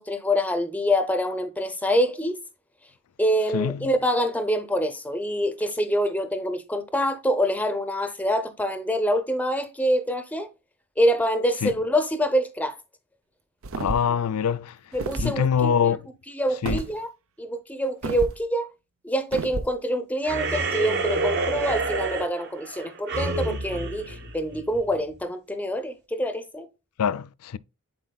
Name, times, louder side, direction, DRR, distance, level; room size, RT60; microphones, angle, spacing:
voice 1, 0.0-2.4 3.2-10.5 11.0-12.8 14.9-16.0 16.3-17.1 17.4-18.7 19.0-26.7, equal, 5° left, 0.7 m, -25 dB
voice 2, 3.5-3.9 11.6-11.7 13.8-14.8 15.2-16.0 16.6-16.8 27.0-27.6, left 7 dB, 85° left, 0.4 m, -24 dB
sound 1, 13.6-14.2 14.9-15.3 16.6-16.9 18.0-18.4 19.3-19.7, right 3 dB, 65° right, 0.6 m, -30 dB
sound 2, 20.2-25.0, right 3 dB, 50° right, 1.3 m, -28 dB
10.5 x 4.3 x 2.3 m
head